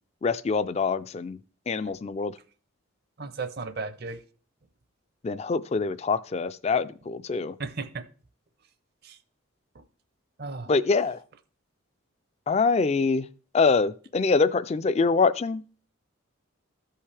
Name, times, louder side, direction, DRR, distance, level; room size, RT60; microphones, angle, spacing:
voice 1, 0.2-1.4 1.7-2.3 5.2-7.5 10.7-11.2 12.5-13.3 13.5-15.6, left 4 dB, 30° left, 0.3 m, -24 dB
voice 2, 3.2-4.2 7.6-8.0 9.0-9.2 10.4-10.7, right 3 dB, 50° right, 0.6 m, -34 dB
14.0 x 5.6 x 3.3 m
head